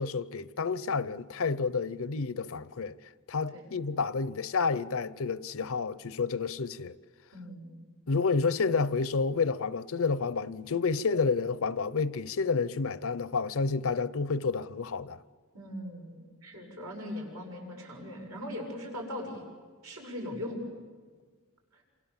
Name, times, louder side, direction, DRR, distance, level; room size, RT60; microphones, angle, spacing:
voice 1, 0.0-3.0 3.3-6.9 8.1-15.2, left 4 dB, 65° left, 0.7 m, -30 dB
voice 2, 7.3-7.7 15.5-19.4 19.8-20.6 21.7-21.8, left 1 dB, 80° right, 7.0 m, -40 dB
27.5 x 27.0 x 7.3 m
head